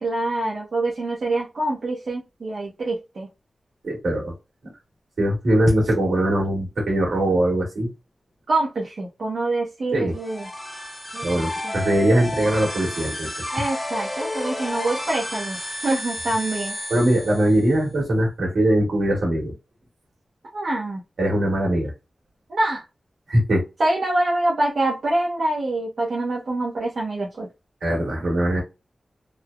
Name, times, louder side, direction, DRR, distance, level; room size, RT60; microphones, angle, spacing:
voice 1, 0.0-3.3 8.5-10.5 11.1-11.7 13.5-15.6 15.8-16.8 20.5-21.0 22.5-22.8 23.8-27.5, right 2 dB, 75° right, -4 dB, 0.7 m, -25 dB
voice 2, 3.8-4.3 5.2-7.9 9.9-10.1 11.2-13.3 16.9-19.5 21.2-21.9 23.3-23.6 27.8-28.6, right 1 dB, 90° right, -2 dB, 1.4 m, -21 dB
sound 1, 10.1-17.8, left 1 dB, 15° left, 1.0 m, -31 dB
3.1 x 2.0 x 2.3 m, 0.25 s
wide cardioid pair, 110°, 0 cm